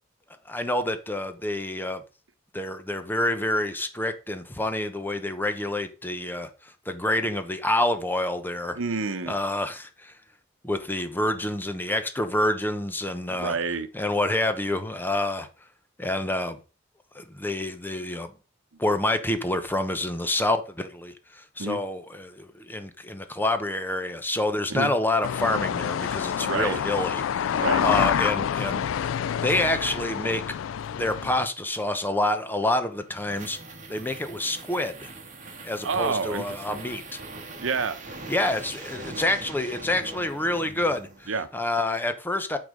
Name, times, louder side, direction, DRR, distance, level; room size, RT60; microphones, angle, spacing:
voice 1, 0.5-2.0 2.5-8.8 9.3-10.1 10.6-13.6 13.9-15.5 16.0-16.6 17.1-18.3 18.8-29.1 29.4-30.4 31.0-33.6 33.9-35.1 35.6-37.0 38.3-42.6, left 1 dB, 10° left, 0.8 m, -27 dB
voice 2, 8.8-9.4 13.3-13.9 21.6-21.8 24.7-24.9 26.4-26.8 27.5-27.8 35.8-36.8 37.6-38.0 41.3-41.5, right 4 dB, 80° right, 0.9 m, -28 dB
sound 1, 25.2-31.5, left 8 dB, 70° left, 0.3 m, -27 dB
sound 2, 32.7-41.5, right 2 dB, 40° right, 1.6 m, -42 dB
9.3 x 4.0 x 5.1 m
head